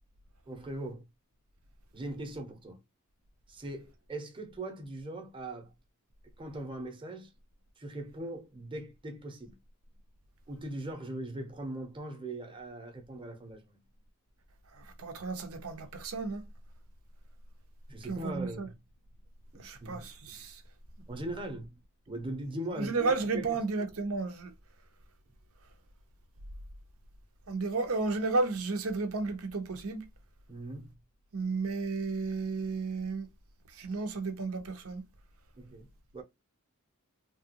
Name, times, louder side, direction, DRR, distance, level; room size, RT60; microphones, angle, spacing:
voice 1, 0.5-1.1 1.9-2.8 3.5-5.7 6.4-7.3 7.8-9.6 10.5-13.8 17.9-18.8 19.5-20.0 21.1-21.8 22.1-23.6 30.5-31.0 35.6-35.9 36.1-36.2, right 1 dB, 25° right, 0.9 m, -40 dB
voice 2, 15.0-16.4 18.1-18.7 19.6-20.6 22.8-24.5 27.5-30.0 31.3-33.3 33.8-35.0, right 3 dB, 80° right, 0.9 m, -32 dB
3.4 x 2.4 x 2.8 m
head